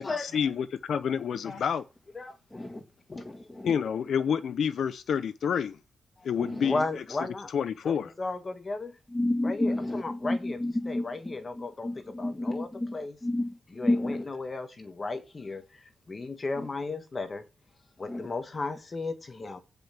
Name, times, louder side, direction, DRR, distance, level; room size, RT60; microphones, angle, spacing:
voice 1, 0.0-1.8 3.6-5.8 6.2-6.8 7.5-8.1, left 7 dB, 60° left, 0.6 m, -28 dB
voice 2, 2.5-2.8 3.1-3.8 6.4-6.7 9.1-14.2 18.1-18.3, left 1 dB, 10° left, 2.2 m, -31 dB
voice 3, 3.1-3.5 6.2-6.3 6.6-7.5 7.8-9.0 9.4-13.2 13.7-17.5 18.0-19.6, left 3 dB, 25° left, 1.3 m, -35 dB
16.0 x 5.4 x 5.9 m
wide cardioid pair, 165°, 0 cm